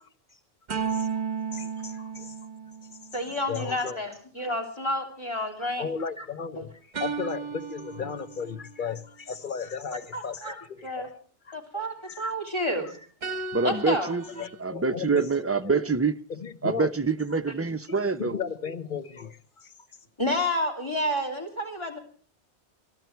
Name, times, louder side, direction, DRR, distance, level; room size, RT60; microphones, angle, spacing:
sound 1, 0.7-3.2 6.9-8.8 13.2-14.6, right 6 dB, 40° right, 1.2 m, -34 dB
voice 1, 0.9-1.2 1.5-2.4 3.5-4.0 5.8-6.7 7.0-11.0 11.5-11.6 12.1-12.3 14.3-15.8 16.3-16.9 18.2-19.7, left 6 dB, 45° left, 1.1 m, -35 dB
voice 2, 3.1-5.9 6.2-6.3 6.5-6.6 10.1-10.5 10.8-11.1 11.5-13.1 13.6-14.1 20.2-22.0, left 1 dB, 25° left, 3.4 m, -30 dB
voice 3, 13.5-14.2 14.6-16.1 16.6-18.4, right 4 dB, 15° right, 0.5 m, -25 dB
22.5 x 13.0 x 4.6 m
omnidirectional pair, 1.2 m